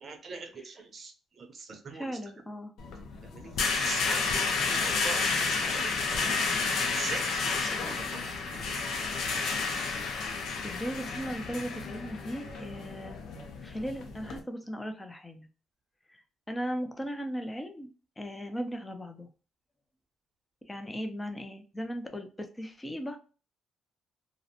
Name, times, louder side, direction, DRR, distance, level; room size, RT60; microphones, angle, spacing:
voice 1, 0.0-2.1 3.2-6.2 6.7-8.9, right 4 dB, 50° right, 5 dB, 0.6 m, -43 dB
voice 2, 1.9-2.7 10.6-13.2 13.6-15.5 16.1-17.9 18.2-19.3 20.7-23.2, equal, 15° left, 6 dB, 0.5 m, -37 dB
sound 1, 2.8-14.4, left 4 dB, 75° left, 0.5 m, -31 dB
2.5 x 2.0 x 2.6 m, 0.36 s
cardioid pair, 90°, 0 cm